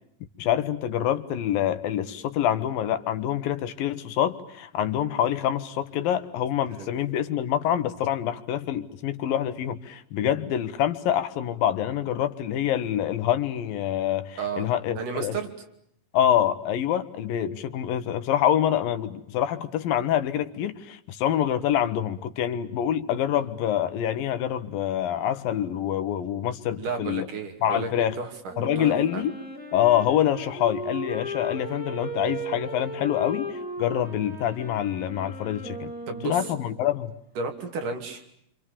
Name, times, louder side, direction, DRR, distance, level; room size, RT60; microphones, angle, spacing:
voice 1, 0.4-15.4 16.1-27.3 27.6-28.2 28.6-29.4 29.7-35.9 36.2-37.1, left 10 dB, 75° left, 11 dB, 3.0 m, -26 dB
voice 2, 14.9-15.5 26.8-29.2 36.1-36.4 37.4-38.2, right 5 dB, 60° right, 4 dB, 4.3 m, -33 dB
Wind instrument woodwind instrument, 28.5-36.9, equal, ahead, 3.9 m, -36 dB
27.5 x 27.0 x 6.9 m, 0.72 s
omnidirectional pair, 4.1 m